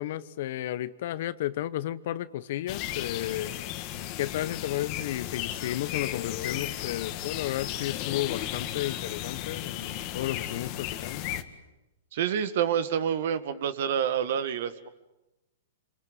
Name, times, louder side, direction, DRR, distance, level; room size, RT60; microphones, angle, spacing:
voice 1, 0.0-3.5 4.2-11.3, left 13 dB, 60° left, 16 dB, 1.1 m, -33 dB
sound 1, 2.7-11.4, left 12 dB, 40° left, 1.9 m, -35 dB
voice 2, 12.1-14.9, right 8 dB, 60° right, 12 dB, 1.9 m, -28 dB
27.5 x 22.5 x 9.1 m, 0.98 s
hypercardioid pair, 125°, 0 cm